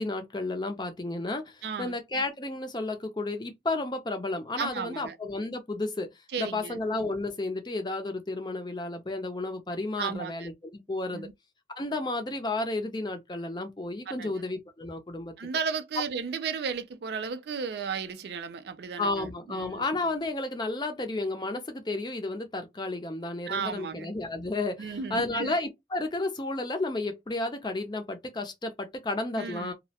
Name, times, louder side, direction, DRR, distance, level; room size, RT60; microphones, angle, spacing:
voice 1, 0.0-6.1 6.4-11.3 11.8-15.3 19.0-29.7, left 2 dB, 25° left, 0.5 m, -32 dB
voice 2, 1.6-1.9 4.6-5.2 6.3-6.8 10.0-10.5 11.1-11.3 14.1-14.3 15.4-19.9 23.5-24.1 24.8-25.6 29.4-29.7, right 6 dB, 70° right, 0.4 m, -34 dB
2.3 x 2.0 x 2.7 m
head